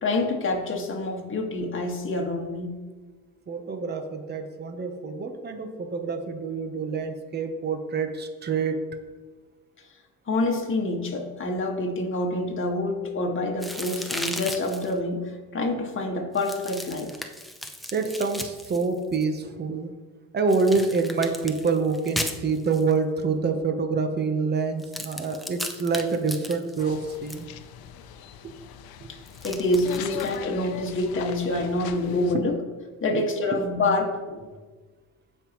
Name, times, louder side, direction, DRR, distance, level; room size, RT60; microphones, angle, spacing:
voice 1, 0.0-2.8 10.3-15.2 15.5-17.1 29.1-32.6 33.0-34.5, left 2 dB, 30° left, 1 dB, 1.8 m, -27 dB
voice 2, 3.5-8.8 17.9-19.9 20.3-27.5 29.0-29.1 32.3-32.4 33.1-33.2, right 4 dB, 25° right, 6 dB, 1.0 m, -26 dB
sound 1, 13.6-14.9 16.3-19.2 20.5-22.9 24.8-27.4 29.3-30.4, equal, ahead, 0.7 m, -36 dB
sound 2, 26.8-32.4, left 10 dB, 70° left, 0.8 m, -40 dB
16.5 x 5.7 x 3.1 m, 1.3 s
cardioid pair, 105°, 38 cm